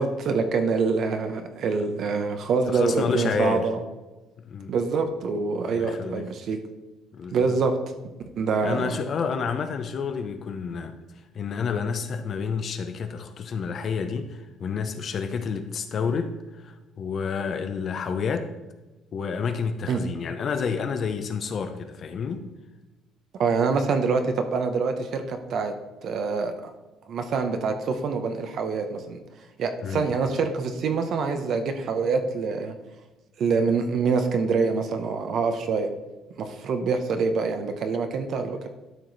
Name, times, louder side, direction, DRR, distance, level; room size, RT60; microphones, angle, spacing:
voice 1, 0.0-3.8 4.7-6.6 7.3-7.7 8.4-9.0 19.9-20.0 23.4-25.7 26.0-26.5 27.1-29.2 29.6-32.8 33.4-35.9 36.4-38.7, right 4 dB, 50° right, 7 dB, 0.8 m, -25 dB
voice 2, 2.7-3.7 4.4-4.7 5.7-6.3 7.1-7.6 8.6-11.0 11.3-18.5 19.1-22.5 29.8-30.1, left 5 dB, 40° left, 8 dB, 0.6 m, -29 dB
12.5 x 4.8 x 4.0 m, 1.1 s
cardioid pair, 155°, 0 cm